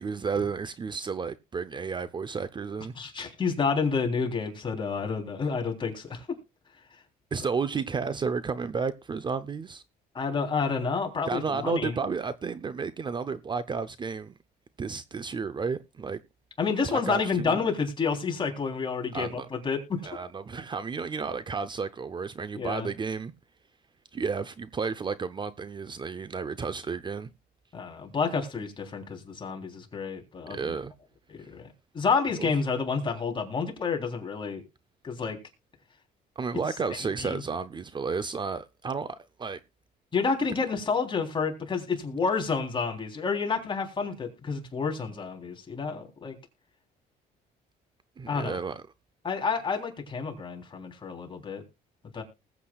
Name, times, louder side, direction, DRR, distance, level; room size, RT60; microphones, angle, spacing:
voice 1, 0.0-3.0 7.3-9.8 11.3-14.4 14.8-16.2 16.8-17.6 19.1-19.5 20.0-23.3 24.1-27.3 30.5-30.9 31.4-31.5 32.4-32.6 36.4-39.6 48.2-48.8, right 5 dB, 25° right, 0.6 m, -32 dB
voice 2, 3.0-6.3 10.1-11.9 16.6-20.0 22.6-22.9 27.7-30.7 31.3-31.7 31.9-34.6 35.0-35.4 37.2-37.4 40.1-46.3 48.3-48.6 49.2-51.6 52.1-52.2, left 5 dB, 30° left, 3.5 m, -29 dB
20.0 x 8.3 x 2.4 m
cardioid pair, 110°, 17 cm